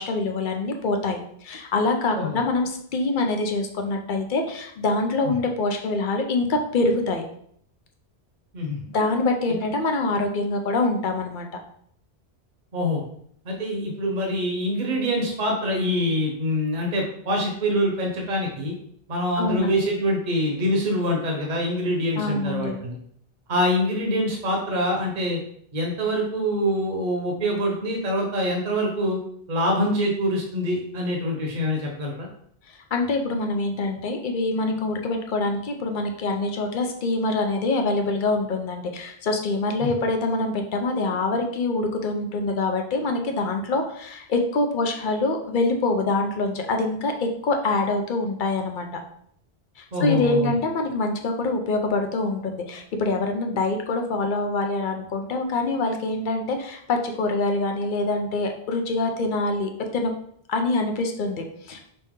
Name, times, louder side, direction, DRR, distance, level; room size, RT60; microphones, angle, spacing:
voice 1, 0.0-7.2 8.9-11.5 19.4-19.7 22.2-22.8 32.7-49.0 49.8-60.1 60.5-61.8, left 2 dB, 55° left, 4 dB, 0.8 m, -25 dB
voice 2, 12.7-13.0 13.4-18.7 19.1-22.9 23.5-25.4 25.7-29.2 29.5-32.3 39.8-39.9 49.9-50.5, equal, 45° right, 0 dB, 1.0 m, -25 dB
5.4 x 2.7 x 3.6 m, 0.66 s
omnidirectional pair, 1.1 m